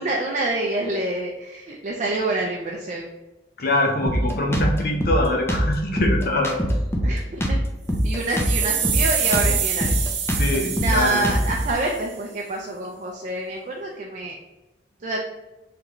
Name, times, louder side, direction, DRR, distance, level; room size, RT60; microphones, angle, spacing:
voice 1, 0.0-3.1 7.0-7.6 8.0-9.9 10.8-14.4 15.0-15.2, right 2 dB, 45° right, 0 dB, 0.5 m, -27 dB
voice 2, 3.6-6.6 10.3-11.3, left 1 dB, 60° left, 2 dB, 0.7 m, -23 dB
Drum kit, 4.0-11.7, equal, 15° left, 0.6 m, -23 dB
sound 1, 7.9-12.1, right 8 dB, 85° right, 1.0 m, -27 dB
3.7 x 3.3 x 3.0 m, 1.1 s
head